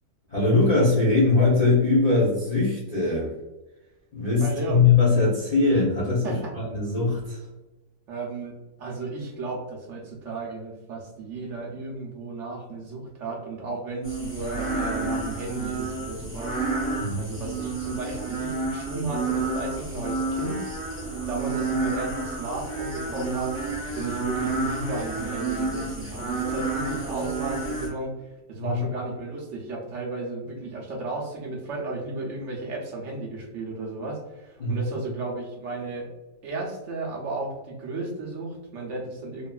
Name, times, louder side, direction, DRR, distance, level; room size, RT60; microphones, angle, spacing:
voice 1, 0.3-3.3 4.1-7.4 17.0-17.3 28.6-28.9 34.6-34.9, left 3 dB, 60° left, -7 dB, 0.4 m, -21 dB
voice 2, 4.4-4.8 6.2-6.5 8.1-20.7 21.0-36.1 36.4-39.5, right 3 dB, 75° right, -2 dB, 0.6 m, -34 dB
sound 1, 14.0-27.9, right 3 dB, 10° right, 0.9 m, -30 dB
2.9 x 2.4 x 2.2 m, 1.0 s
omnidirectional pair, 1.9 m